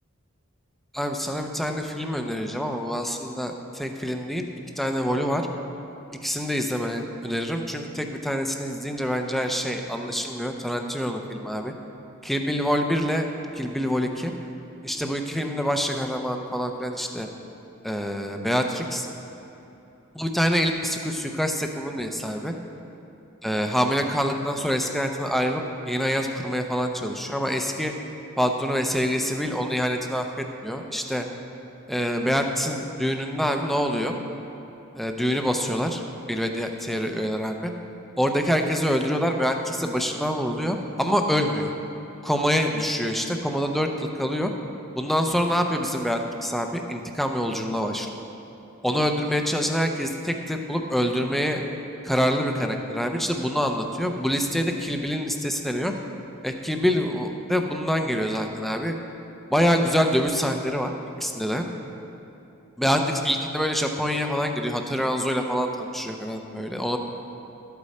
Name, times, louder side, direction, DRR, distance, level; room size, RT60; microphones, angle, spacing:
voice 1, 0.9-4.5 4.8-5.4 6.2-11.7 12.2-13.3 13.6-14.3 14.8-17.3 17.8-19.1 20.1-22.5 23.4-27.9 28.4-30.3 30.6-31.2 31.9-34.1 35.0-36.0 36.3-37.7 38.2-41.7 42.2-44.5 45.0-48.1 48.8-51.6 52.0-55.9 56.4-59.0 59.5-60.9 61.2-61.6 62.8-67.0, equal, ahead, 4 dB, 0.6 m, -26 dB
12.5 x 8.2 x 4.2 m, 2.9 s
head